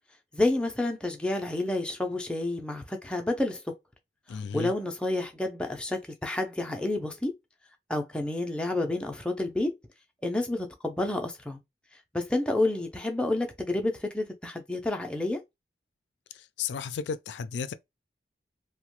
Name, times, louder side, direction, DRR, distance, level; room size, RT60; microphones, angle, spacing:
voice 1, 0.3-3.6 4.3-7.3 7.9-9.7 10.2-11.6 12.1-15.4, left 2 dB, 5° left, 0.4 m, -29 dB
voice 2, 4.3-4.7 16.6-17.7, left 6 dB, 85° left, 0.3 m, -33 dB
2.8 x 2.1 x 3.0 m
head